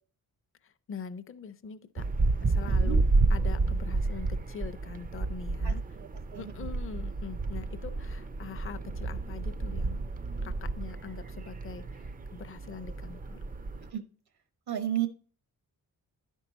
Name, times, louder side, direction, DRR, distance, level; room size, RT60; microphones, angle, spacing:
voice 1, 0.9-2.1 2.4-3.0 3.3-5.8 6.4-10.0 10.4-12.1 12.3-13.4, left 6 dB, 35° left, 12 dB, 0.5 m, -43 dB
sound 1, 2.0-13.9, right 3 dB, 25° right, 0.3 m, -30 dB
voice 2, 6.3-6.7 13.9-14.0 14.7-15.1, right 11 dB, 80° right, 8 dB, 1.1 m, -32 dB
10.5 x 4.6 x 3.9 m, 0.42 s
cardioid pair, 75°, 38 cm